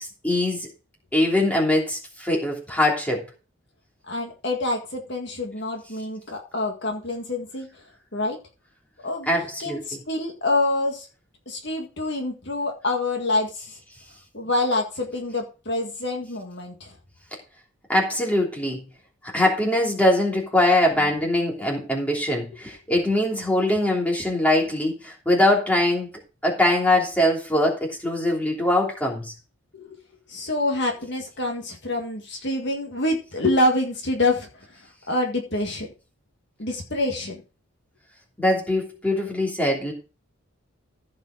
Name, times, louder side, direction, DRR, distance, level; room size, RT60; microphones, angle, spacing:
voice 1, 0.2-0.7 1.1-3.2 9.3-9.8 17.9-18.8 19.3-26.1 26.4-29.3 38.4-39.9, left 1 dB, 5° left, -2 dB, 3.0 m, -22 dB
voice 2, 4.1-7.8 8.1-8.4 9.0-11.1 11.5-13.8 14.3-17.0 29.7-30.0 30.3-35.9 36.6-37.4, left 2 dB, 55° left, 1 dB, 1.9 m, -26 dB
15.0 x 5.4 x 5.0 m, 0.33 s
head